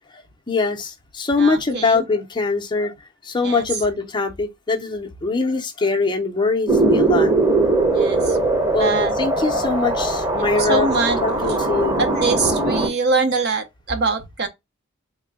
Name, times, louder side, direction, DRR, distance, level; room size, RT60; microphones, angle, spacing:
voice 1, 0.5-2.9 3.2-7.3 8.2-8.3 8.7-10.9 11.2-12.0, left 3 dB, 20° left, 0.6 m, -22 dB
voice 2, 1.4-2.1 3.4-3.7 7.9-8.4 8.8-9.1 10.6-11.2 12.0-14.5, right 4 dB, 50° right, 0.7 m, -23 dB
sound 1, 6.7-12.9, right 2 dB, 15° right, 0.8 m, -20 dB
3.6 x 2.2 x 3.4 m
head